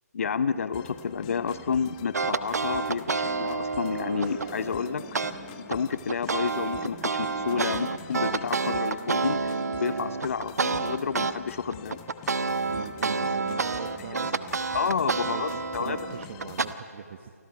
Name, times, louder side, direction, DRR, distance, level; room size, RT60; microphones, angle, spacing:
voice 1, 0.1-5.0 5.6-9.5 9.8-12.0 14.7-16.0 16.4-16.5, left 6 dB, 55° left, 15 dB, 0.7 m, -30 dB
sound 1, 0.7-16.7, left 11 dB, 25° left, 1.0 m, -47 dB
sound 2, 2.1-4.5 5.1-5.3 5.7-11.3 11.7-16.7, right 4 dB, 70° right, 1.1 m, -29 dB
sound 3, 3.9-10.2, right 3 dB, 20° right, 5.7 m, -44 dB
voice 2, 12.7-14.6 15.1-17.3, right 7 dB, 45° right, 8 dB, 1.1 m, -40 dB
29.5 x 25.5 x 4.9 m, 2.2 s
figure-of-eight pair, 135°, 9 cm